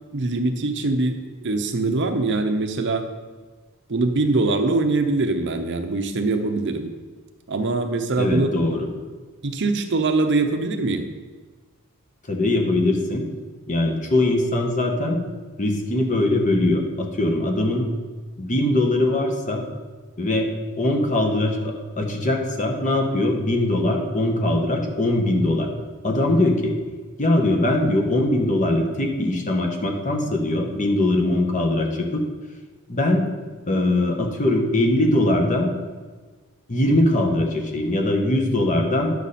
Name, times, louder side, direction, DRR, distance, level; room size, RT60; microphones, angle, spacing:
voice 1, 0.1-3.1 3.9-6.9 7.5-8.5 9.4-11.1, right 3 dB, 55° right, 7 dB, 0.7 m, -23 dB
voice 2, 8.2-8.9 12.3-13.2 13.7-15.2 15.6-17.8 18.4-19.7 20.2-20.5 20.8-25.7 26.0-26.7 27.2-32.2 32.9-33.3 33.7-35.7 36.7-39.1, left 1 dB, 35° left, 2 dB, 1.3 m, -21 dB
10.5 x 6.6 x 4.2 m, 1.4 s
head